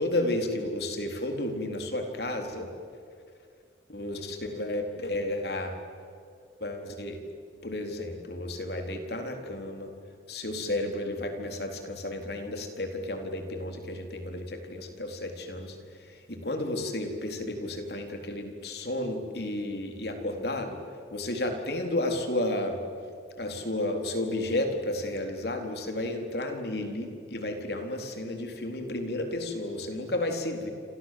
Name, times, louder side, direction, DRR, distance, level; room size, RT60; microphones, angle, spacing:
voice 1, 0.0-2.7 3.9-5.7 6.6-7.2 7.6-9.9 10.3-20.8 21.1-22.8 23.4-30.7, left 1 dB, 60° left, 4 dB, 4.0 m, -32 dB
28.0 x 27.5 x 7.8 m, 2.3 s
head